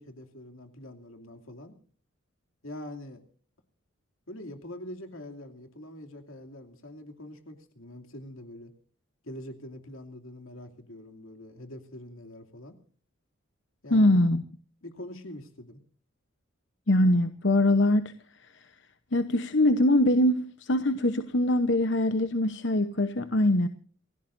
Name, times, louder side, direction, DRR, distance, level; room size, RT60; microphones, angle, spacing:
voice 1, 0.0-1.7 2.6-3.2 4.3-8.7 9.2-12.8 13.8-14.2 14.8-15.8, left 1 dB, 85° left, 5 dB, 2.8 m, -44 dB
voice 2, 13.9-14.4 16.9-18.1 19.1-23.7, left 1 dB, 60° left, 10 dB, 0.9 m, -23 dB
28.5 x 16.0 x 2.6 m, 0.42 s
head